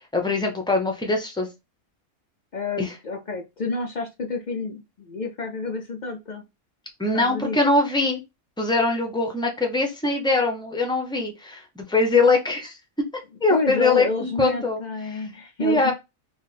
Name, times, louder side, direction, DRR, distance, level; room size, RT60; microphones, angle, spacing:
voice 1, 0.1-1.5 2.8-2.9 7.0-8.2 8.6-12.7 13.4-14.8 15.6-15.9, left 3 dB, 5° left, 2 dB, 0.5 m, -22 dB
voice 2, 2.5-6.4 7.1-7.6 13.5-15.9, left 3 dB, 65° left, 2 dB, 0.4 m, -29 dB
3.5 x 2.4 x 4.1 m, 0.23 s
omnidirectional pair, 1.5 m